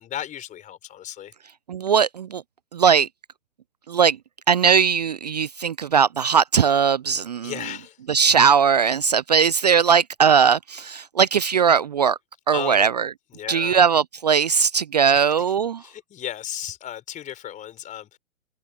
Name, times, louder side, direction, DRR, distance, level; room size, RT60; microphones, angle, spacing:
voice 1, 0.0-1.3 7.4-8.0 12.5-12.9 13.3-13.8 15.8-18.2, left 11 dB, 20° left, 4.0 m, -35 dB
voice 2, 1.7-2.4 2.7-3.1 3.9-4.2 4.5-7.5 8.1-12.2 12.5-13.1 13.5-15.8, right 6 dB, 35° right, 0.4 m, -19 dB
figure-of-eight pair, 125°, 41 cm